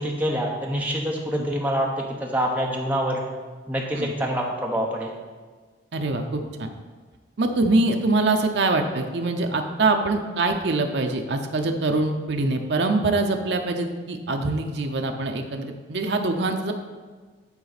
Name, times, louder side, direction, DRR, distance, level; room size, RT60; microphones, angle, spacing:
voice 1, 0.0-3.2 3.7-5.1, equal, 10° right, -2 dB, 0.9 m, -26 dB
voice 2, 5.9-6.7 7.4-16.7, right 2 dB, 65° right, 4 dB, 0.6 m, -24 dB
9.7 x 4.2 x 4.1 m, 1.4 s
head